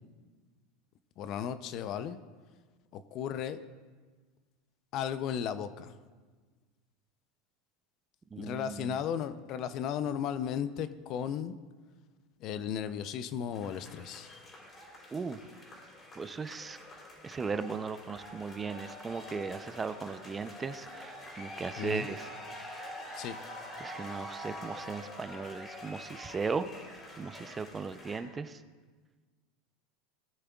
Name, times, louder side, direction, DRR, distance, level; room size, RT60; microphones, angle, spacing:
voice 1, 1.2-2.2 2.9-3.6 4.9-5.9 8.4-11.5 12.4-14.3 21.8-22.1 23.1-23.4, left 8 dB, 50° left, 13 dB, 0.6 m, -35 dB
voice 2, 8.3-9.0 15.1-15.4 16.2-16.8 17.2-22.9 23.8-26.7 27.2-28.6, right 5 dB, 20° right, 11 dB, 0.6 m, -37 dB
sound 1, 13.5-28.2, left 1 dB, 30° left, 3.8 m, -46 dB
19.0 x 9.8 x 2.4 m, 1.4 s
hypercardioid pair, 100°, 0 cm